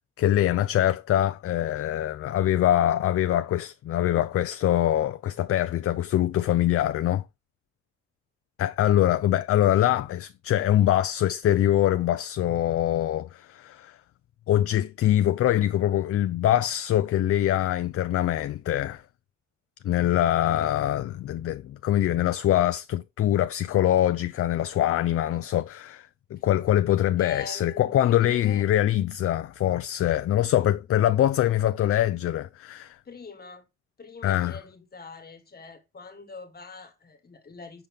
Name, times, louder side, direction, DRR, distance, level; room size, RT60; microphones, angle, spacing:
voice 1, 0.2-7.2 8.6-14.0 14.5-19.0 19.8-33.0 34.2-34.6, left 12 dB, 50° left, 0.4 m, -24 dB
voice 2, 9.7-10.0 10.7-10.9 27.2-28.7 33.0-33.7 34.0-37.9, left 4 dB, 30° left, 1.6 m, -43 dB
5.8 x 5.0 x 3.5 m
cardioid pair, 90°, 30 cm